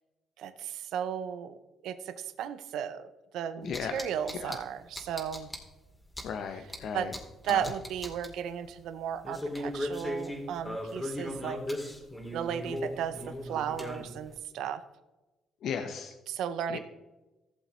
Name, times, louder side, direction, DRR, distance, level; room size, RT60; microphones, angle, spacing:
voice 1, 0.4-1.6 1.8-3.1 3.3-5.5 6.9-7.1 7.4-11.9 12.3-14.8 16.3-16.8, right 9 dB, 85° right, 11 dB, 0.6 m, -35 dB
voice 2, 3.6-4.0 4.4-4.6 6.2-7.1 7.5-7.6 15.6-16.1 16.7-16.8, left 7 dB, 75° left, 6 dB, 0.7 m, -36 dB
sound 1, 3.7-4.6 5.0-5.6 6.1-6.2 6.7-6.8 7.1-7.2 7.4-8.3 9.2-14.3, left 1 dB, 15° left, 2.2 m, -37 dB
15.5 x 7.2 x 3.1 m, 1.1 s
cardioid pair, 90°, 0 cm